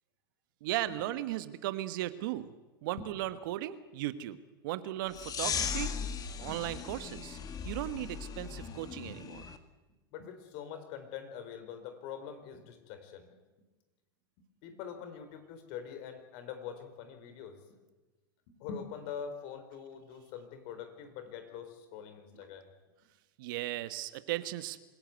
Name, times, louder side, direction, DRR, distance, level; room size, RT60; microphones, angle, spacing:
voice 1, 0.6-2.5 2.8-4.4 4.6-5.9 6.4-7.4 7.6-9.4 23.4-24.8, right 15 dB, 65° right, 12 dB, 1.4 m, -36 dB
sound 1, 5.1-9.6, left 6 dB, 30° left, 2.0 m, -38 dB
voice 2, 10.1-13.4 14.6-17.6 18.5-22.7, left 7 dB, 55° left, 8 dB, 4.4 m, -44 dB
26.0 x 16.5 x 8.0 m, 1.2 s
hypercardioid pair, 100°, 12 cm